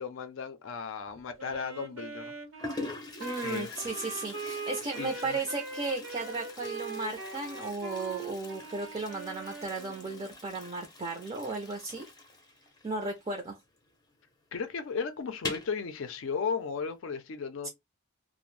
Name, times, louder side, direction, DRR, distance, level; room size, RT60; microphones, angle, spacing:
voice 1, 0.0-2.3 3.4-3.8 5.0-5.4 14.5-17.7, left 5 dB, 70° left, 0.4 m, -35 dB
Toilet flush, 1.1-1.6 2.3-2.4 2.6-13.9 14.1-14.2 14.5-14.6 15.3-15.8, left 2 dB, 20° left, 0.6 m, -44 dB
Wind instrument woodwind instrument, 1.4-10.4, right 4 dB, 75° right, 0.9 m, -41 dB
voice 2, 3.2-12.1 12.8-13.6 17.6-17.7, right 3 dB, 25° right, 0.4 m, -35 dB
2.5 x 2.0 x 3.1 m
head